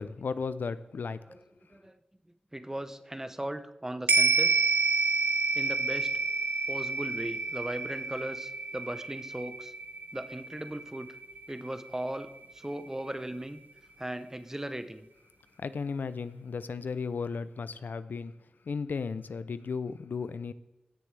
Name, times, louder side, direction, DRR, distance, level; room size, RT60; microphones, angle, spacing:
voice 1, 0.0-1.2 15.6-18.3 18.7-20.5, left 5 dB, 80° left, 0.4 m, -35 dB
voice 2, 2.5-4.7 5.5-6.2 6.7-9.7 10.1-11.1 11.5-13.6 14.0-15.1, right 1 dB, 15° right, 0.7 m, -38 dB
sound 1, 4.1-12.6 13.0-13.1, right 3 dB, 75° right, 0.9 m, -29 dB
16.0 x 6.8 x 3.3 m
wide cardioid pair, 70°, 3 cm